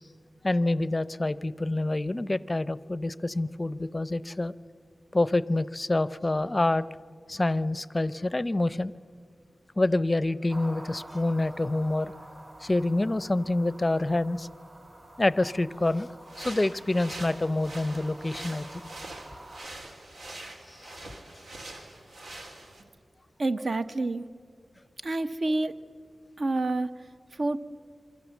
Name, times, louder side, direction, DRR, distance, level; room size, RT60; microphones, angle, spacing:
voice 1, 0.4-4.5 5.1-6.8 7.3-8.9 9.8-12.1 12.6-14.5 15.2-16.1 16.4-18.8 20.8-20.9, left 2 dB, 25° left, 17 dB, 0.6 m, -27 dB
sound 1, 10.5-19.7, right 1 dB, 25° right, 2.1 m, -48 dB
sound 2, 16.3-22.8, right 2 dB, 85° right, 3.4 m, -44 dB
voice 2, 23.4-24.3 25.0-25.7 26.4-27.6, right 2 dB, 55° right, 10 dB, 1.0 m, -28 dB
28.0 x 23.5 x 7.1 m, 2.2 s
wide cardioid pair, 120°, 0 cm